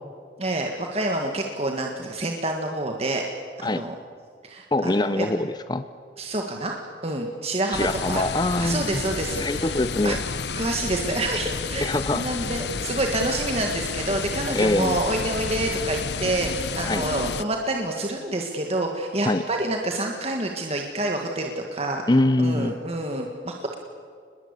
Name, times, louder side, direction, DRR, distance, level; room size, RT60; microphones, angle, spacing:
voice 1, 0.4-3.2 3.6-3.9 4.4-5.3 6.2-6.8 7.0-8.2 8.6-9.8 10.0-10.2 10.6-22.0 22.4-23.8, right 2 dB, 35° right, 2 dB, 1.8 m, -28 dB
voice 2, 4.7-5.8 7.7-9.0 9.4-10.2 11.8-12.3 14.5-15.0 16.9-17.1 19.2-19.4 22.1-22.7, left 2 dB, 25° left, 11 dB, 0.6 m, -23 dB
sound 1, 7.7-17.4, left 5 dB, 70° left, 0.8 m, -31 dB
28.0 x 21.0 x 8.3 m, 2.1 s
head